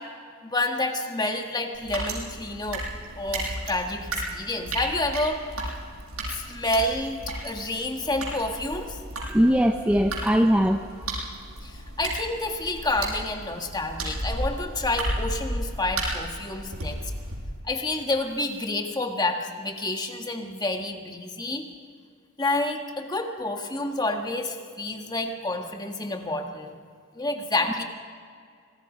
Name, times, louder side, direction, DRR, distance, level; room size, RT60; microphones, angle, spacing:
voice 1, 0.4-2.9 3.2-5.4 6.3-9.0 11.6-17.0 17.6-21.6 22.4-26.7 27.1-27.8, left 2 dB, 20° left, 4 dB, 1.7 m, -29 dB
sound 1, 1.7-17.4, right 1 dB, 75° right, 6.9 m, -34 dB
voice 2, 9.3-10.9, equal, 5° right, 4 dB, 0.6 m, -20 dB
26.5 x 19.5 x 5.2 m, 2.2 s
head